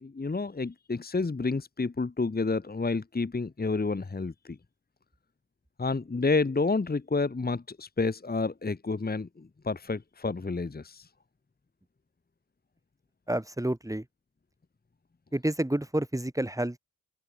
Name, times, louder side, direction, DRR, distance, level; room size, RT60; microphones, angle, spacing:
voice 1, 0.0-4.6 5.8-11.1, left 3 dB, 25° left, 1.4 m, -30 dB
voice 2, 13.3-14.0 15.3-16.8, right 1 dB, 10° right, 3.1 m, -29 dB
cardioid pair, 50°, 36 cm